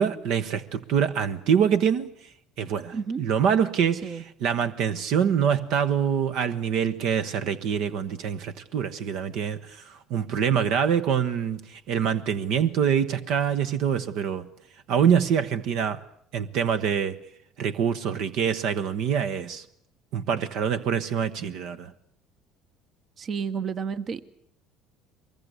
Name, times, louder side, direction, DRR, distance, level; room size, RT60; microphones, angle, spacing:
voice 1, 0.0-2.1 2.6-4.0 4.4-14.5 14.9-16.0 16.3-17.2 17.6-19.6 20.1-21.9, right 8 dB, 70° right, 1.1 m, -25 dB
voice 2, 2.9-3.2 4.0-4.2 23.2-24.2, right 6 dB, 45° right, 1.1 m, -31 dB
23.5 x 21.5 x 8.1 m
supercardioid pair, 85°, 0 cm